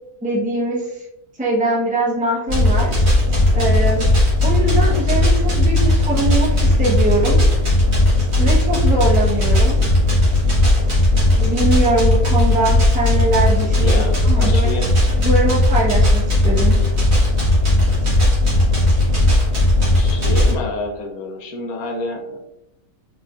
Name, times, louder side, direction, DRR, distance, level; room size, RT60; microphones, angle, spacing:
voice 1, 0.2-0.9 1.4-2.9 3.5-4.1 4.4-7.4 8.3-9.8 11.4-14.8 15.1-16.8, right 1 dB, 5° right, -5 dB, 0.9 m, -22 dB
sound 1, 2.5-20.5, left 1 dB, 50° right, 1.7 m, -16 dB
voice 2, 13.8-14.9 19.9-22.4, left 2 dB, 80° left, 2 dB, 1.1 m, -28 dB
4.5 x 4.0 x 2.4 m, 0.86 s
omnidirectional pair, 1.5 m